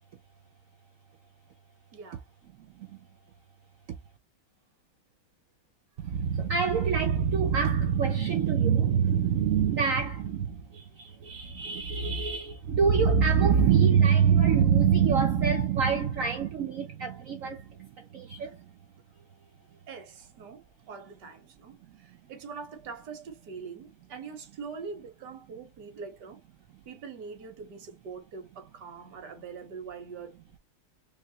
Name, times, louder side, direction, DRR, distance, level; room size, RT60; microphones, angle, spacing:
voice 1, 1.9-2.2 18.4-18.5 19.9-26.4 26.8-30.4, right 5 dB, 60° right, 1.6 m, -43 dB
voice 2, 2.6-3.1 3.9-4.0 6.0-18.7, right 7 dB, 85° right, 0.7 m, -25 dB
3.4 x 3.3 x 2.8 m
omnidirectional pair, 2.1 m